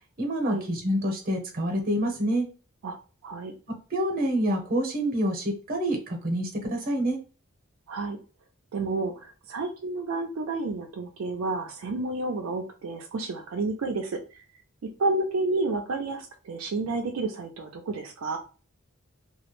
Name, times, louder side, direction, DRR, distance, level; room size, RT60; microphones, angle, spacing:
voice 1, 0.2-2.5 3.9-7.2, right 1 dB, 45° right, 3 dB, 0.8 m, -27 dB
voice 2, 3.2-3.5 7.9-8.2 8.7-14.4 15.0-18.4, right 3 dB, 80° right, 3 dB, 0.4 m, -30 dB
2.3 x 2.1 x 3.0 m, 0.35 s
head